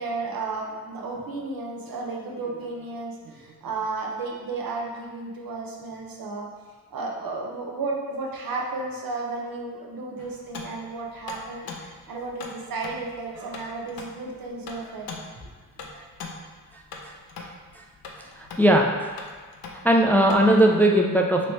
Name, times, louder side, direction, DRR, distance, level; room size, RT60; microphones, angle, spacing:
voice 1, 0.0-6.5 6.9-15.3, right 3 dB, 75° right, -1 dB, 0.8 m, -33 dB
sound 1, 10.2-20.6, left 4 dB, 85° left, 0.6 m, -42 dB
voice 2, 18.4-18.9 19.8-21.5, right 1 dB, 5° left, 1 dB, 0.3 m, -18 dB
3.1 x 2.9 x 4.4 m, 1.4 s
cardioid pair, 70°, 35 cm